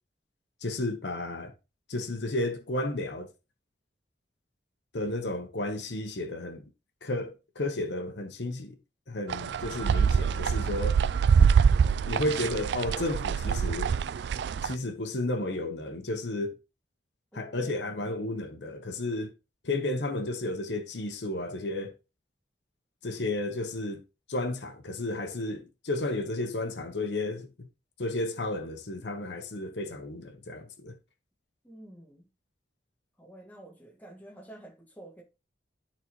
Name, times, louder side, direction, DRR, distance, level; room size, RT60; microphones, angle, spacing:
voice 1, 0.6-1.5 1.9-3.3 4.9-6.6 7.0-8.8 9.1-11.0 12.0-13.9 14.6-16.6 17.3-19.3 19.6-21.9 23.0-24.0 24.3-27.7 28.0-30.9, left 2 dB, 75° left, 1.0 m, -32 dB
sound 1, 9.3-14.7, right 6 dB, 70° right, 0.3 m, -25 dB
voice 2, 17.3-18.1 31.6-32.2 33.2-35.2, right 1 dB, 10° left, 1.7 m, -49 dB
11.5 x 4.1 x 3.0 m
head